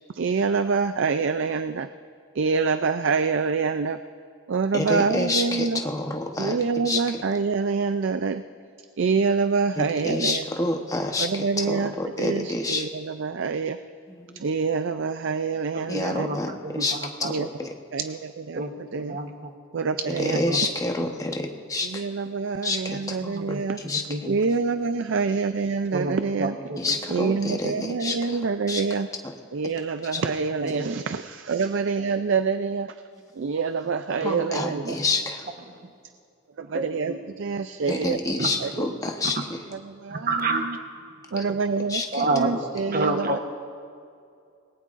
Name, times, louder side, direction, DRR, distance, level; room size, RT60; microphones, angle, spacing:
voice 1, 0.1-1.9 2.3-4.0 4.5-5.8 6.4-8.4 9.0-10.7 11.2-13.8 14.3-16.3 17.2-17.5 17.9-18.6 18.9-19.2 19.7-20.4 21.8-23.8 24.3-26.5 27.1-29.1 29.5-33.0 33.3-35.0 36.6-38.2 38.6-38.9 39.7-40.8 41.3-43.4, right 4 dB, 60° right, 10 dB, 0.4 m, -26 dB
voice 2, 4.7-6.6 6.8-7.2 9.8-12.9 14.3-14.4 15.9-16.9 17.2-17.3 20.1-21.9 22.6-23.3 23.8-24.0 26.8-28.4 28.7-28.8 30.1-30.2 34.2-35.5 37.9-39.4 41.9-42.3, left 2 dB, 15° left, 3 dB, 1.0 m, -28 dB
voice 3, 15.7-17.4 18.5-19.5 19.9-20.6 21.0-21.1 23.3-24.4 25.9-27.0 27.7-27.8 30.6-30.9 34.2-34.3 34.7-34.8 35.7-35.9 36.7-37.2 38.4-38.5 40.1-40.8 42.1-42.5 42.9-43.4, right 2 dB, 45° right, 5 dB, 1.0 m, -30 dB
26.5 x 19.5 x 2.5 m, 2.4 s
head